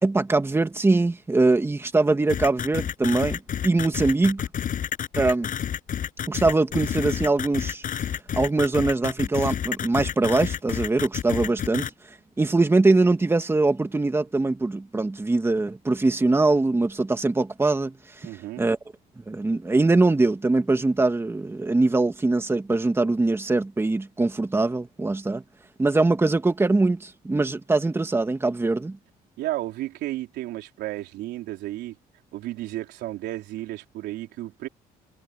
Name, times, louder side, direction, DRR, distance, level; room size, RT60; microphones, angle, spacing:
voice 1, 0.0-4.4 5.2-5.5 6.3-7.8 8.3-11.9 12.4-18.3 18.6-18.8 19.3-25.4 25.8-29.0, right 2 dB, 15° right, 2.0 m, -22 dB
sound 1, 2.3-11.9, left 9 dB, 55° left, 6.5 m, -29 dB
voice 2, 18.2-18.6 29.4-31.9 32.3-34.7, right 15 dB, 85° right, 3.9 m, -33 dB
cardioid pair, 110°, 17 cm